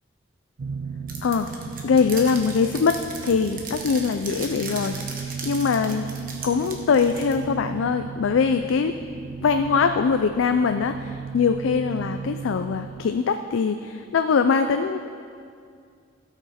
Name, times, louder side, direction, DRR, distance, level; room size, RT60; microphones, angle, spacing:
sound 1, 0.6-13.1, right 5 dB, 75° right, 0.4 m, -36 dB
sound 2, 1.1-7.4, right 4 dB, 45° right, 1.1 m, -37 dB
voice 1, 1.8-6.1 6.4-8.9 9.4-15.0, left 5 dB, 85° left, 8 dB, 0.4 m, -22 dB
16.5 x 6.0 x 4.2 m, 2.3 s
head